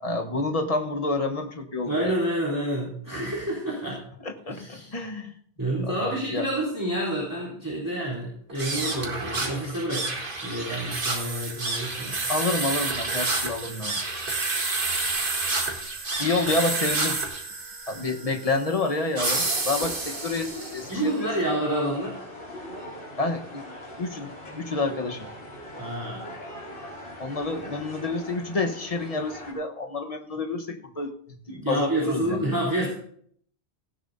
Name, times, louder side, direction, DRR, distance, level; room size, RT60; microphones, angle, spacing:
voice 1, 0.0-2.1 4.2-5.3 5.8-6.5 12.3-14.0 16.2-17.2 17.9-21.3 23.2-23.6 24.0-25.3 27.2-32.4, left 3 dB, 35° left, 4 dB, 1.2 m, -29 dB
voice 2, 1.9-4.0 4.5-5.0 5.6-10.1 10.4-12.2 20.9-22.2 25.8-26.2 31.5-32.9, right 1 dB, 15° right, -5 dB, 3.5 m, -28 dB
sound 1, 8.5-21.0, right 3 dB, 50° right, 1.9 m, -29 dB
sound 2, 19.2-29.5, left 1 dB, 85° left, 3.6 m, -41 dB
17.0 x 15.5 x 2.7 m, 0.64 s
omnidirectional pair, 1.1 m